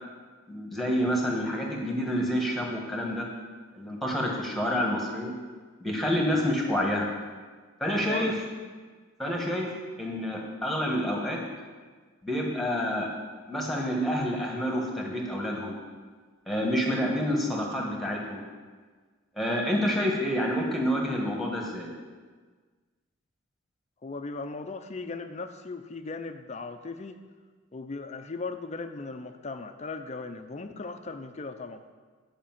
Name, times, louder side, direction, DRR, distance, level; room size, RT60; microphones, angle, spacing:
voice 1, 0.5-3.3 3.7-5.3 5.8-7.1 7.8-8.3 9.2-9.7 10.0-11.4 12.2-13.1 13.5-15.7 16.5-18.4 19.4-21.9, equal, ahead, -1 dB, 1.5 m, -28 dB
voice 2, 8.1-8.4 24.0-27.2 27.7-31.8, left 3 dB, 30° left, 8 dB, 0.5 m, -37 dB
10.0 x 5.1 x 7.4 m, 1.5 s
head